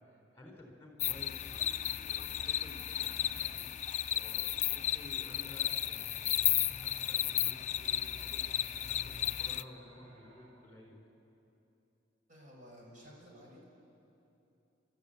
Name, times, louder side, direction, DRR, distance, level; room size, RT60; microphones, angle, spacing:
voice 1, 0.0-11.0, left 1 dB, 15° left, 1 dB, 4.0 m, -55 dB
sound 1, 1.0-9.6, left 12 dB, 40° left, 0.4 m, -34 dB
sound 2, 2.0-10.5, right 2 dB, 85° right, 7.2 m, -63 dB
voice 2, 12.3-13.6, equal, 45° right, -4 dB, 6.4 m, -54 dB
28.0 x 13.5 x 8.4 m, 2.9 s
head